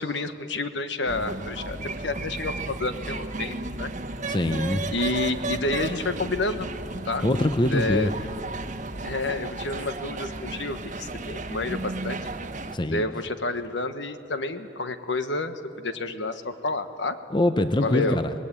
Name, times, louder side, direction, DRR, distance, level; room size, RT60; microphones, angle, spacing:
voice 1, 0.0-3.9 4.9-6.7 7.0-7.3 7.7-8.1 9.0-12.3 12.9-17.2 17.8-18.2, left 2 dB, 70° left, 9 dB, 1.3 m, -29 dB
sound 1, 1.1-12.8, right 2 dB, 40° right, 1.1 m, -34 dB
voice 2, 4.3-4.9 7.2-8.1 12.7-13.0 17.3-18.3, left 1 dB, 25° left, 9 dB, 0.7 m, -23 dB
26.5 x 20.0 x 9.0 m, 2.8 s
head